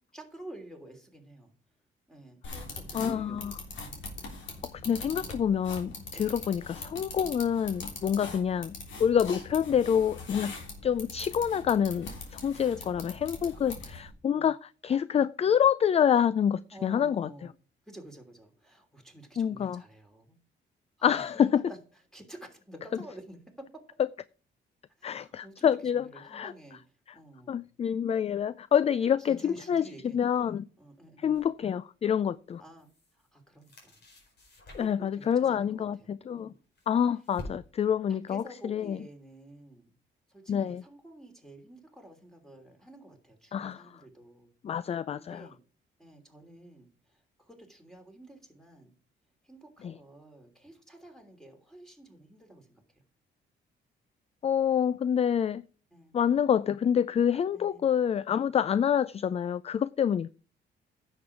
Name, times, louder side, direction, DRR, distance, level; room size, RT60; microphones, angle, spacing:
voice 1, 0.1-1.5 2.1-3.6 6.1-6.5 8.2-8.3 12.6-12.9 13.4-13.9 14.3-14.5 15.4-15.5 16.7-17.5 17.9-20.4 21.0-21.8 22.1-23.7 25.0-26.8 27.1-27.7 29.2-31.4 32.6-32.9 33.3-34.0 34.7-36.6 38.1-39.9 40.3-44.5 45.1-45.6 46.0-48.9 49.4-52.8 55.9-56.1 57.5-57.9, right 1 dB, ahead, 3.0 m, -50 dB
sound 1, 2.4-14.1, left 3 dB, 70° left, 3.4 m, -42 dB
voice 2, 2.9-3.6 4.7-8.7 9.0-10.5 10.8-17.3 19.4-19.8 21.0-21.7 25.0-26.5 27.5-29.8 30.1-30.7 31.2-32.6 34.7-36.5 36.9-39.0 40.5-40.8 43.5-43.9 44.6-45.5 49.8-49.9 54.4-55.6 56.1-60.3, left 8 dB, 30° left, 0.3 m, -27 dB
sound 2, 31.3-31.5 32.5-33.3 33.6-35.1 36.3-37.9, left 2 dB, 55° left, 4.5 m, -48 dB
10.0 x 7.1 x 4.9 m
cardioid pair, 90°, 20 cm